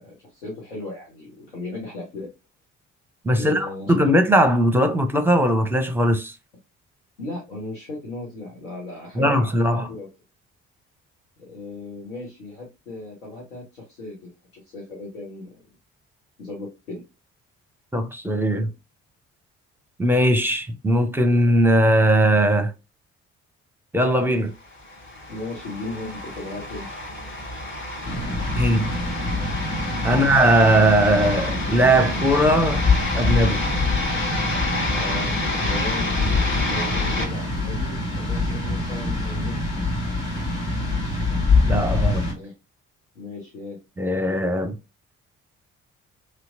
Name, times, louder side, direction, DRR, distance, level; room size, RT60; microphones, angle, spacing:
voice 1, 0.0-2.3 3.3-3.9 7.2-10.1 11.4-15.6 16.4-17.0 25.3-26.9 30.1-30.3 34.9-35.3 35.6-36.1 36.7-39.8 42.3-42.5 43.1-43.8, left 2 dB, 80° left, 0.9 m, -36 dB
voice 2, 3.2-6.3 9.2-9.9 17.9-18.7 20.0-22.7 23.9-24.5 28.5-28.9 30.0-32.8 33.1-33.6 41.7-42.2 44.0-44.7, right 1 dB, 5° right, 0.7 m, -19 dB
sound 1, 24.7-37.3, left 1 dB, 30° left, 1.2 m, -29 dB
sound 2, 28.0-42.3, left 3 dB, 60° left, 2.0 m, -25 dB
3.1 x 2.9 x 2.5 m
figure-of-eight pair, 45°, 36 cm